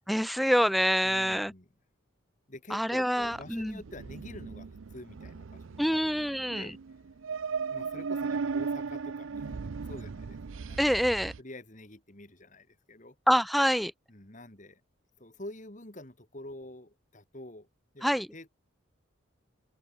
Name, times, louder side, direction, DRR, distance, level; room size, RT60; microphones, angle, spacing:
voice 1, 0.1-1.5 2.7-3.8 5.8-6.7 10.8-11.3 13.3-13.9 18.0-18.3, equal, ahead, 0.7 m, -26 dB
voice 2, 1.0-1.7 2.5-7.0 7.7-10.4 10.7-10.8 11.1-13.2 14.1-14.8 15.2-17.7 17.9-18.5, left 1 dB, 35° left, 2.4 m, -47 dB
sound 1, 3.2-11.4, right 5 dB, 70° right, 0.5 m, -37 dB
open air
head